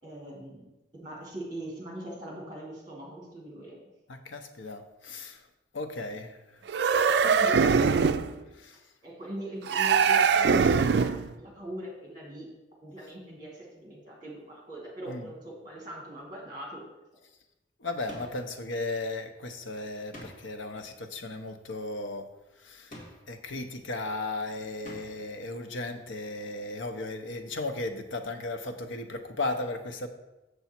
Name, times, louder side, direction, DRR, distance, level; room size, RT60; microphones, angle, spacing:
voice 1, 0.0-3.8 7.2-8.0 9.0-11.1 11.4-12.5 12.8-16.8, right 1 dB, 20° right, -3 dB, 2.5 m, -41 dB
voice 2, 4.1-5.4 5.7-6.6 8.5-8.8 15.1-15.3 17.8-22.3 22.6-22.9 23.3-30.1, left 2 dB, 85° left, 7 dB, 0.8 m, -36 dB
sound 1, 6.7-8.3 9.7-11.3, right 6 dB, 60° right, 0.3 m, -22 dB
sound 2, 18.1-18.6 20.1-20.7 22.9-23.5 24.8-25.3, left 1 dB, 45° left, 1.8 m, -46 dB
7.0 x 6.9 x 4.4 m, 1.0 s
head